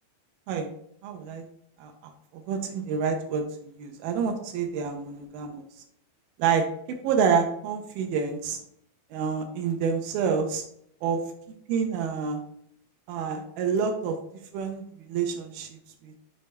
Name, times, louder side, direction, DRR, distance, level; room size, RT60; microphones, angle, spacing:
voice 1, 1.0-1.5 1.8-1.9 2.5-5.6 6.4-8.6 9.1-10.6 11.0-11.2 11.7-12.4 13.1-14.2 14.5-14.8 15.1-15.7 16.0-16.1, right 6 dB, 80° right, 4 dB, 2.3 m, -28 dB
6.8 x 3.3 x 5.0 m, 0.71 s
omnidirectional pair, 4.4 m